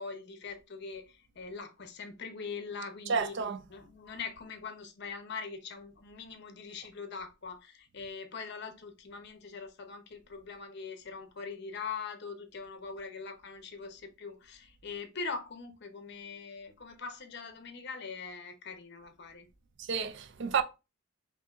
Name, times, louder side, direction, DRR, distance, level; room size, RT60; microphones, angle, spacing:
voice 1, 0.0-3.4 3.7-19.5, left 5 dB, 55° left, 0.7 m, -42 dB
voice 2, 3.1-3.6 19.8-20.6, right 5 dB, 60° right, 0.4 m, -30 dB
5.4 x 2.7 x 2.4 m
head